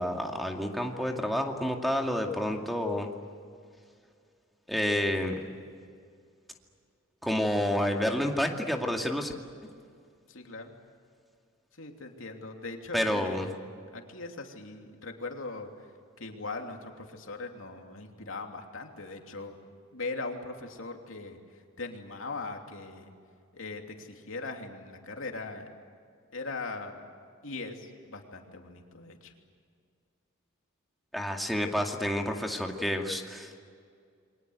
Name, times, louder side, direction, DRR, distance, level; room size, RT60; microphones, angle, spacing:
voice 1, 0.0-3.1 4.7-5.3 7.2-9.3 12.9-13.5 31.1-33.6, left 1 dB, ahead, 1 dB, 2.3 m, -29 dB
voice 2, 10.3-10.7 11.8-13.5 13.9-15.7 16.2-19.6 19.9-21.4 21.8-23.1 23.5-25.7 26.3-27.0 27.4-29.3, left 3 dB, 70° left, 3 dB, 3.1 m, -40 dB
28.5 x 24.0 x 8.1 m, 2.2 s
head